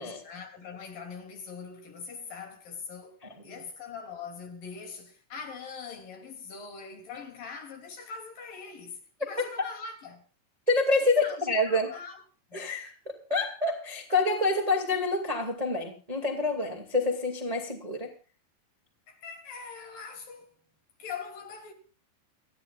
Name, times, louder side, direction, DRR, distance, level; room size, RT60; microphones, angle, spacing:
voice 1, 0.0-10.2 11.0-12.2 12.5-12.7 19.1-20.6 21.0-21.7, left 5 dB, 50° left, 4.3 m, -42 dB
voice 2, 10.7-11.9 12.5-18.1, left 2 dB, 60° right, 0.4 m, -27 dB
29.0 x 10.0 x 2.5 m
omnidirectional pair, 5.5 m